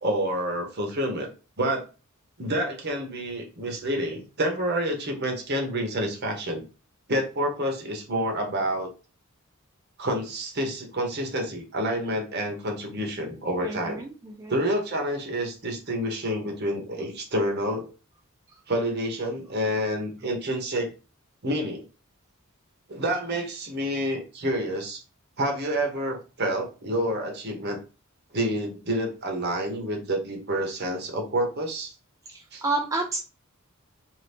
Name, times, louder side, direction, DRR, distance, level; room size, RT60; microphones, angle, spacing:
voice 1, 0.0-1.3 1.6-1.8 2.4-6.6 7.1-8.9 10.0-14.0 14.5-17.9 18.7-20.9 21.4-21.8 22.9-25.0 25.4-27.8 28.3-31.9 32.5-32.6, right 1 dB, 50° right, 2 dB, 0.9 m, -28 dB
voice 2, 13.6-14.5 18.5-18.6 32.3-33.2, right 2 dB, 15° right, 1 dB, 0.3 m, -30 dB
2.7 x 2.6 x 3.4 m, 0.33 s
head